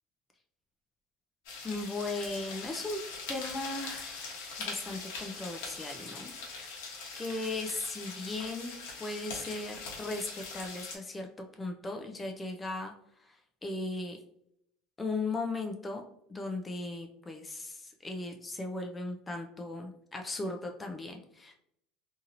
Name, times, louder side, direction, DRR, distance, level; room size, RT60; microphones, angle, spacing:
sound 1, 1.4-11.0, left 4 dB, 80° left, 0.9 m, -42 dB
voice 1, 1.6-3.0 3.3-6.3 7.2-8.7 9.0-14.2 15.0-16.0 16.3-21.6, left 2 dB, 20° left, 3 dB, 0.4 m, -37 dB
2.8 x 2.7 x 2.5 m, 0.74 s
supercardioid pair, 100°, 0 cm